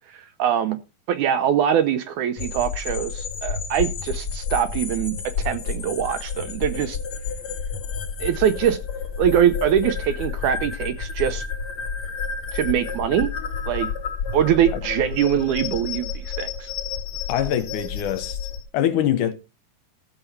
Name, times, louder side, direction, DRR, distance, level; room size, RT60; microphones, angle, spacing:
voice 1, 0.1-0.8 1.1-7.0 8.2-8.8 9.2-11.4 12.5-13.3 13.7-13.9 14.3-16.7, right 9 dB, 75° right, 1.9 m, -23 dB
sound 1, 2.4-18.6, left 6 dB, 50° left, 2.7 m, -30 dB
voice 2, 17.3-18.4 18.7-19.3, left 11 dB, 75° left, 2.1 m, -23 dB
13.5 x 6.8 x 5.7 m
omnidirectional pair, 4.1 m